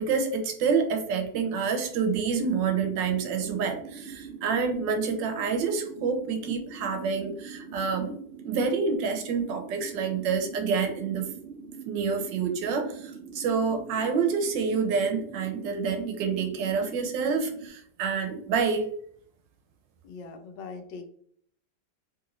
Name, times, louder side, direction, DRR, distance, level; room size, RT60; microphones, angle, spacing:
voice 1, 0.0-8.2 8.4-11.3 11.9-18.9, right 5 dB, 85° right, 5 dB, 1.3 m, -28 dB
sound 1, 2.4-17.7, right 5 dB, 60° right, 0.7 m, -44 dB
voice 2, 20.0-21.1, left 4 dB, 80° left, 6 dB, 1.2 m, -41 dB
3.3 x 2.9 x 2.5 m, 0.62 s
omnidirectional pair, 1.9 m